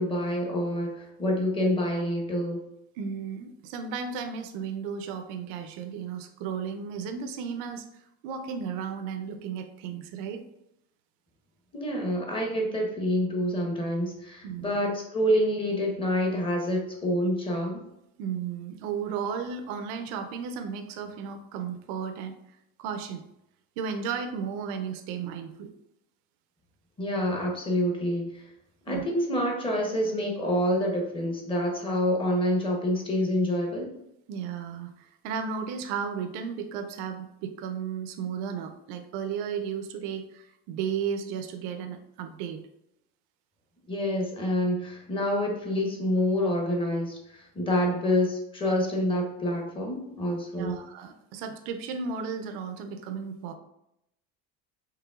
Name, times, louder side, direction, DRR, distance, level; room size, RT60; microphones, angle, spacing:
voice 1, 0.0-2.6 11.7-17.8 27.0-28.4 28.9-33.9 43.9-50.7, equal, 15° left, 1 dB, 0.8 m, -27 dB
voice 2, 3.0-10.4 14.4-14.8 18.2-22.3 22.8-23.2 23.8-25.7 28.9-29.0 34.3-42.6 50.5-53.5, right 6 dB, 85° right, 6 dB, 0.5 m, -34 dB
4.8 x 3.1 x 2.3 m, 0.83 s
cardioid pair, 155°, 30 cm